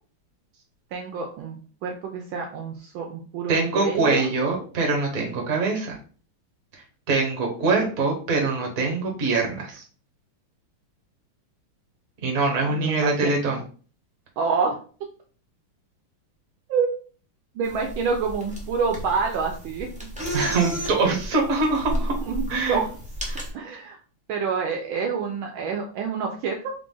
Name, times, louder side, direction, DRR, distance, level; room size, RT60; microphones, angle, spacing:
voice 1, 0.9-4.3 12.7-13.3 14.4-14.8 16.7-16.9 17.5-19.9 22.3-22.9 23.5-24.0 24.3-26.7, right 5 dB, 75° right, 1 dB, 1.3 m, -27 dB
voice 2, 3.5-6.0 7.1-9.8 12.2-13.6 20.3-22.2 22.5-22.8 23.3-23.4, right 3 dB, 45° right, 1 dB, 1.4 m, -23 dB
sound 1, 17.6-23.5, equal, 10° right, 0.3 m, -33 dB
4.1 x 2.4 x 3.8 m, 0.41 s
omnidirectional pair, 2.3 m